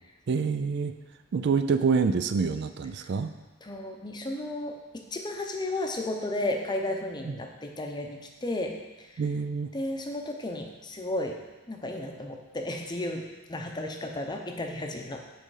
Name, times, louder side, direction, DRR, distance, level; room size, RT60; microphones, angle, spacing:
voice 1, 0.3-0.9 1.3-3.3 7.2-7.3 9.2-9.7, right 5 dB, 55° right, 10 dB, 0.3 m, -26 dB
voice 2, 3.6-9.2 9.7-11.4 11.7-15.2, left 1 dB, 20° left, 3 dB, 0.7 m, -33 dB
7.8 x 5.0 x 4.8 m, 1.2 s
head